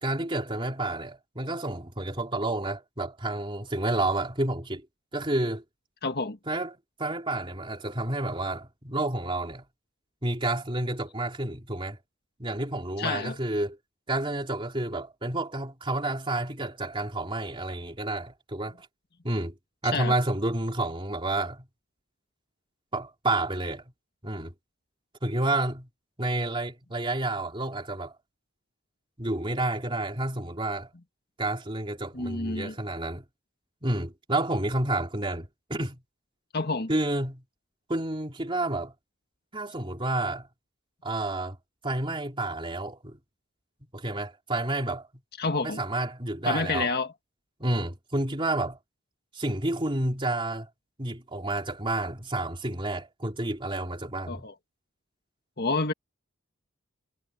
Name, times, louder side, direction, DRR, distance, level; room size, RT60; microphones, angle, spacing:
voice 1, 0.0-4.8 5.1-5.6 6.5-9.6 10.2-12.0 12.4-13.8 14.1-18.9 19.2-19.5 19.8-21.6 22.9-23.8 24.2-24.5 25.2-25.9 26.2-28.1 29.2-30.9 31.4-33.2 33.8-36.0 36.9-37.4 37.9-38.9 39.5-40.5 41.0-41.6 41.8-43.2 43.9-45.1 45.6-46.9 47.6-48.8 49.3-50.7 51.0-54.4, right 2 dB, 25° right, 3.2 m, -30 dB
voice 2, 6.0-6.4 13.0-13.4 19.9-20.2 32.1-32.8 36.5-36.9 45.4-45.8 46.5-47.1 54.3-54.6 55.6-55.9, left 3 dB, 50° left, 2.0 m, -29 dB
head